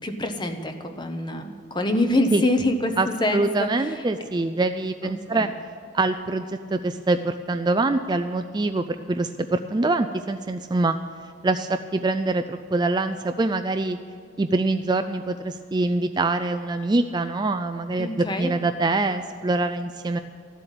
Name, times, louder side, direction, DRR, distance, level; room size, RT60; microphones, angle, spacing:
voice 1, 0.0-4.0 5.0-5.5 18.0-18.5, left 1 dB, 20° left, 6 dB, 0.9 m, -26 dB
voice 2, 3.3-5.5 5.9-11.0 11.4-14.0 14.4-18.1 18.4-20.2, right 2 dB, 20° right, 8 dB, 0.3 m, -24 dB
14.0 x 7.8 x 9.2 m, 2.3 s
head